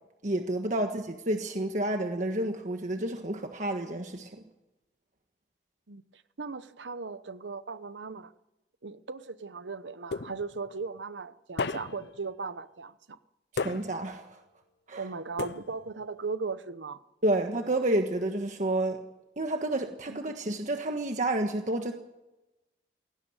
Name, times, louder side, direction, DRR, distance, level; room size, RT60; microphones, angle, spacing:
voice 1, 0.2-4.4 13.5-14.4 14.9-15.0 17.2-19.0 19.4-21.9, right 1 dB, 45° right, 5 dB, 1.4 m, -30 dB
voice 2, 5.9-8.3 8.8-13.2 15.0-17.0 20.1-20.2, right 4 dB, 90° right, 13 dB, 0.9 m, -38 dB
sound 1, 10.1-10.7 11.6-12.2 13.6-14.2 15.4-16.0, left 4 dB, 65° left, 0.6 m, -35 dB
17.5 x 17.0 x 9.0 m, 0.97 s
head